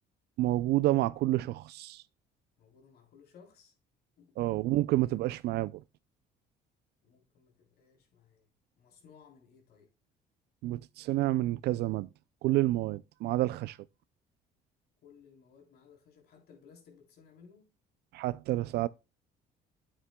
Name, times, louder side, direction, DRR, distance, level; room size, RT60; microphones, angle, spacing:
voice 1, 0.4-2.0 4.4-5.8 10.6-12.1 12.4-13.8 18.1-18.9, right 16 dB, 75° right, 0.4 m, -29 dB
voice 2, 2.6-3.7 4.2-4.3 7.0-8.5 8.8-9.9 15.0-17.7, left 6 dB, 65° left, 3.3 m, -59 dB
9.4 x 8.8 x 2.2 m
cardioid pair, 110°, 17 cm